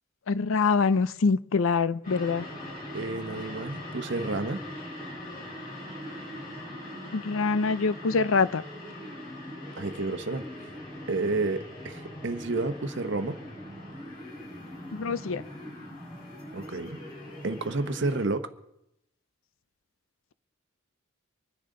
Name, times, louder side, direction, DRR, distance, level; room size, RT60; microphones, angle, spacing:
voice 1, 0.3-2.5 7.1-8.6 14.9-15.4, left 4 dB, 70° left, 17 dB, 0.5 m, -25 dB
sound 1, 2.0-18.3, left 1 dB, 35° left, 4.5 m, -41 dB
voice 2, 2.9-4.6 9.8-10.4 11.1-13.4 16.5-17.0 17.4-18.5, right 3 dB, 55° right, 9 dB, 0.9 m, -30 dB
24.5 x 10.5 x 3.8 m, 0.81 s
head